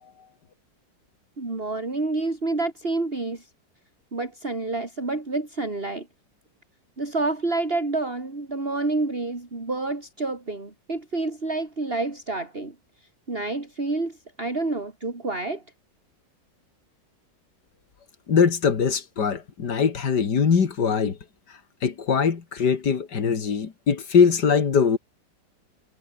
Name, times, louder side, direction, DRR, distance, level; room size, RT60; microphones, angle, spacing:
voice 1, 1.4-3.5 4.1-6.1 7.0-12.8 13.3-15.6, right 2 dB, 30° right, 3.7 m, -28 dB
voice 2, 18.3-21.2 21.8-25.0, left 6 dB, 65° left, 2.7 m, -21 dB
omnidirectional pair, 2.0 m